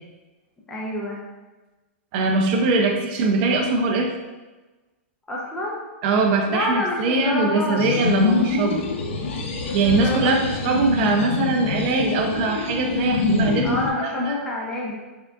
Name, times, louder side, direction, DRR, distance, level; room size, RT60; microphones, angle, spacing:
voice 1, 0.7-1.2 5.3-5.8 6.5-8.0 9.6-10.8 13.6-14.9, left 2 dB, 10° left, -3 dB, 0.6 m, -28 dB
voice 2, 2.1-4.2 6.0-8.9 9.7-14.3, right 3 dB, 40° right, 2 dB, 0.4 m, -22 dB
sound 1, 7.8-13.9, left 4 dB, 70° left, 0.6 m, -25 dB
3.6 x 3.5 x 2.3 m, 1.2 s
hypercardioid pair, 150°, 7 cm